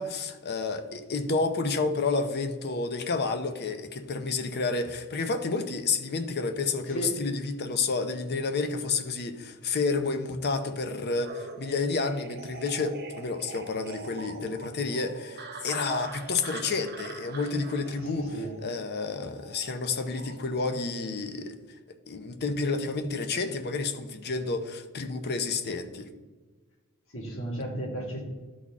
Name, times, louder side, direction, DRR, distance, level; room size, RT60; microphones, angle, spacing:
voice 1, 0.0-18.3 18.6-21.6 22.1-26.1, left 4 dB, 50° left, 0.7 m, -30 dB
voice 2, 6.9-7.2 18.0-18.5 27.1-28.2, right 1 dB, 65° left, 2.0 m, -34 dB
sound 1, 11.2-20.4, right 4 dB, 45° right, 0.8 m, -43 dB
12.5 x 4.1 x 3.6 m
head